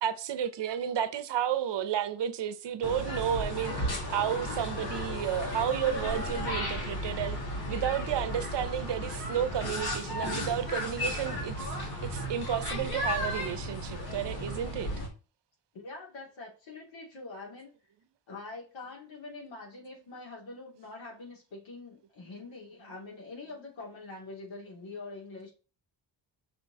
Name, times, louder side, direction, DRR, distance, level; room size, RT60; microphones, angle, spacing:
voice 1, 0.0-7.4 7.7-14.9, right 9 dB, 70° right, 0.8 m, -32 dB
sound 1, 2.8-15.1, equal, 55° left, 2.2 m, -34 dB
voice 2, 15.7-17.7 18.3-25.5, left 3 dB, 90° left, 3.1 m, -44 dB
5.7 x 4.4 x 4.2 m
wide cardioid pair, 150°, 44 cm